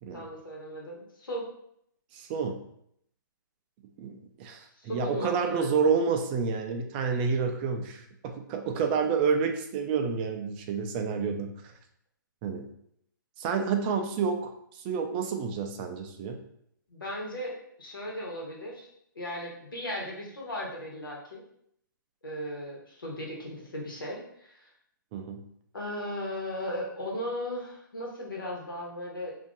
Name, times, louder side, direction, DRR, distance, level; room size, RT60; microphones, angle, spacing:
voice 1, 0.1-1.4 4.7-5.8 16.9-17.5 17.8-18.9 19.1-21.4 22.2-24.7 25.7-29.4, left 1 dB, 90° left, -2 dB, 1.3 m, -37 dB
voice 2, 2.1-2.6 4.0-11.7 12.4-12.7 13.4-16.4 25.1-25.5, right 5 dB, 25° right, 5 dB, 0.4 m, -29 dB
2.6 x 2.5 x 3.8 m, 0.72 s
hypercardioid pair, 140°, 11 cm